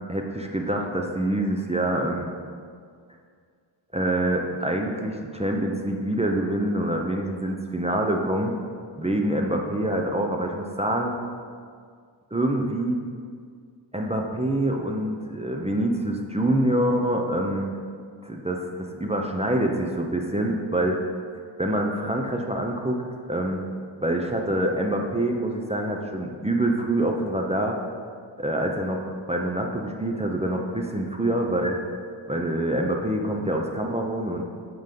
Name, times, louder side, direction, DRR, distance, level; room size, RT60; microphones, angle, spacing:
voice 1, 0.1-2.3 3.9-8.5 9.0-11.2 12.3-13.0 13.9-17.7 18.2-21.0 21.6-23.0 23.3-23.6 24.0-27.8 28.4-31.8 32.3-34.4, right 1 dB, 15° right, 1 dB, 0.8 m, -26 dB
7.9 x 3.9 x 5.3 m, 2.1 s
cardioid pair, 50°, 46 cm